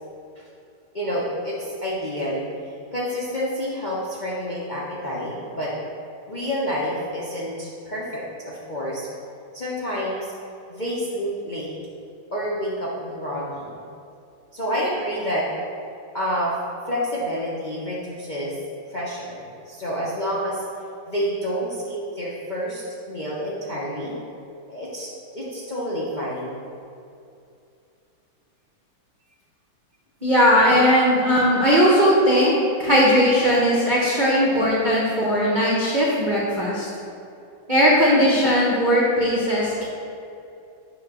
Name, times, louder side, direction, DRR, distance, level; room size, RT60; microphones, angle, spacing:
voice 1, 0.9-2.4 2.9-5.7 6.3-9.1 9.5-10.3 10.7-11.7 12.3-13.7 14.5-15.5 16.1-16.5 16.9-18.5 18.9-20.6 21.1-24.2 24.7-25.1 25.3-26.6, equal, 45° left, -7 dB, 0.5 m, -28 dB
voice 2, 30.2-32.5 32.8-36.9 37.7-39.8, equal, 35° right, -7 dB, 0.8 m, -18 dB
7.9 x 3.1 x 6.0 m, 2.6 s
omnidirectional pair, 2.2 m